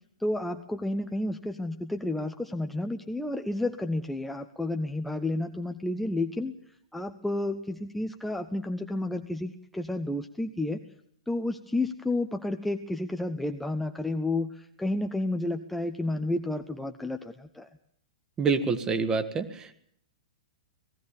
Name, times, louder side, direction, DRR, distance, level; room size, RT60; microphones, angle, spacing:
voice 1, 0.2-6.5 6.9-10.8 11.3-17.7, left 2 dB, 5° left, 5 dB, 0.8 m, -31 dB
voice 2, 18.4-19.7, right 5 dB, 20° right, 9 dB, 1.5 m, -27 dB
19.0 x 15.5 x 8.8 m, 0.69 s
figure-of-eight pair, 105°, 3 cm